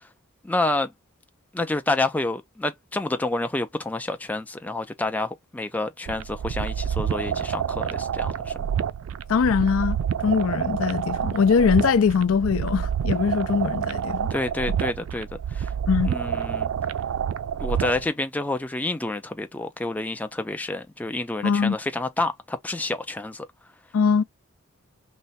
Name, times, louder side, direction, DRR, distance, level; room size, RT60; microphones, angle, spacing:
voice 1, 0.4-0.9 1.5-8.5 14.3-15.7 16.0-16.7 17.6-23.5, left 2 dB, 5° left, 0.3 m, -28 dB
sound 1, 6.1-18.1, right 8 dB, 75° right, 0.3 m, -28 dB
voice 2, 9.3-10.0 10.2-14.3 15.9-16.1 21.4-21.8 23.9-24.2, left 6 dB, 75° left, 0.4 m, -21 dB
3.2 x 2.0 x 4.0 m
head